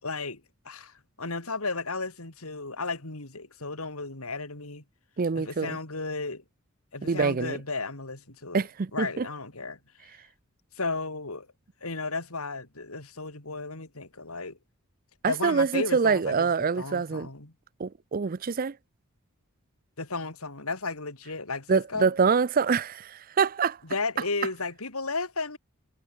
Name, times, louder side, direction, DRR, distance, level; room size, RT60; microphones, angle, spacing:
voice 1, 0.0-4.8 5.4-6.4 6.9-8.6 8.9-9.8 10.8-11.5 11.8-14.6 15.2-16.5 16.8-17.5 20.0-22.1 23.9-25.6, left 3 dB, 90° left, 4.0 m, -34 dB
voice 2, 5.2-5.8 7.1-7.6 8.5-9.3 15.2-17.3 17.8-18.8 21.7-23.8, right 5 dB, 40° right, 0.5 m, -25 dB
head